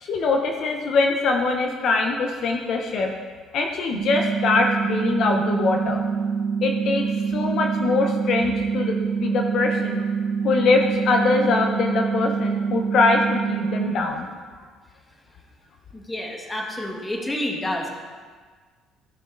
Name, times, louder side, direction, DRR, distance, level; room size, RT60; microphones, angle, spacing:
voice 1, 0.0-3.1 3.5-6.0 6.6-7.1 7.3-8.9 9.2-10.0 10.4-14.3, left 3 dB, 60° left, 3 dB, 0.9 m, -22 dB
sound 1, 3.9-13.9, right 6 dB, 85° right, 1.4 m, -25 dB
voice 2, 15.9-17.9, left 1 dB, 15° left, 0 dB, 1.6 m, -29 dB
15.0 x 6.2 x 4.0 m, 1.5 s
cardioid pair, 120°, 0 cm